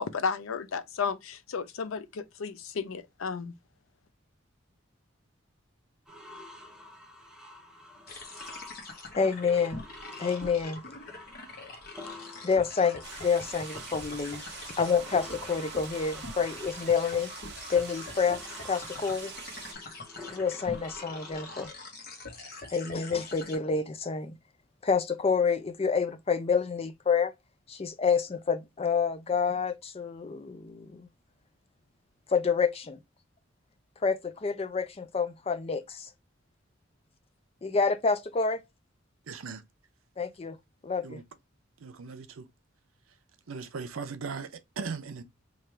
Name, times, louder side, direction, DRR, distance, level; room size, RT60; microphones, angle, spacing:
voice 1, 0.0-3.5, left 5 dB, 85° left, 0.5 m, -33 dB
sound 1, 6.1-21.7, left 1 dB, 5° right, 0.7 m, -49 dB
sound 2, 8.1-23.6, left 3 dB, 50° left, 1.0 m, -44 dB
voice 2, 9.1-9.8 10.2-10.8 12.4-17.3 17.7-19.3 20.3-21.7 22.7-24.3 24.8-27.3 27.7-31.1 32.3-33.0 34.0-36.1 37.6-38.6 40.2-40.6 40.8-41.2, left 5 dB, 30° left, 0.4 m, -28 dB
sound 3, 13.0-19.7, right 7 dB, 55° right, 0.8 m, -45 dB
voice 3, 39.3-39.6 41.0-41.2 41.8-42.5 43.5-45.2, right 5 dB, 85° right, 0.6 m, -38 dB
3.3 x 2.4 x 4.3 m
head